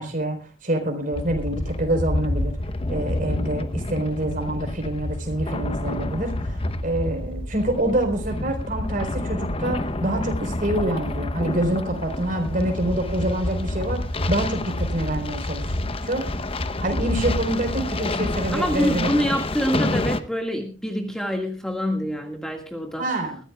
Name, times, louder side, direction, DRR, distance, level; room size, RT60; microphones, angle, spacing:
voice 1, 0.0-2.6 2.9-14.0 14.3-15.8 16.0-16.4 16.8-19.2 23.0-23.4, right 1 dB, 40° right, 5 dB, 4.1 m, -26 dB
sound 1, 1.1-20.2, left 1 dB, 30° left, 0.8 m, -28 dB
voice 2, 18.5-23.0, equal, 5° left, 3 dB, 1.7 m, -26 dB
22.0 x 15.0 x 2.3 m, 0.36 s
head